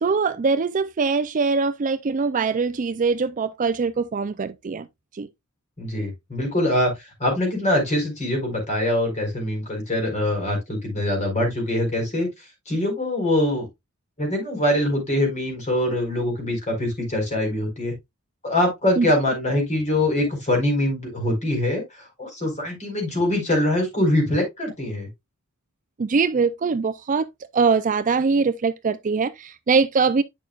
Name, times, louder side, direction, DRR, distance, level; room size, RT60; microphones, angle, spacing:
voice 1, 0.0-4.9 5.1-5.3 19.0-19.1 26.0-27.3 27.5-30.2, right 4 dB, 35° right, 0.4 m, -22 dB
voice 2, 5.8-12.3 12.7-13.7 14.2-17.9 18.4-25.1, left 1 dB, 35° left, 4.4 m, -23 dB
9.2 x 6.4 x 2.3 m
head